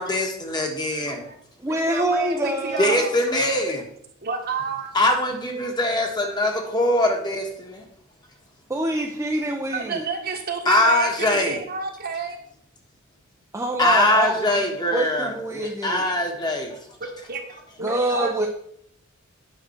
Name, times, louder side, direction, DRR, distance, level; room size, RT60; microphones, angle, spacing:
voice 1, 0.0-1.2 2.8-3.8 4.9-7.8 10.6-11.6 13.8-16.7, left 1 dB, 20° left, 1 dB, 1.5 m, -22 dB
voice 2, 1.0-1.4 1.7-3.1 4.2-4.9 9.7-12.4 17.3-18.3, right 4 dB, 50° right, 2 dB, 1.5 m, -30 dB
voice 3, 1.6-3.0 8.7-10.0 13.5-14.5 14.9-16.1 17.8-18.5, right 1 dB, 15° right, 0 dB, 0.7 m, -25 dB
9.2 x 6.1 x 4.5 m, 0.68 s
head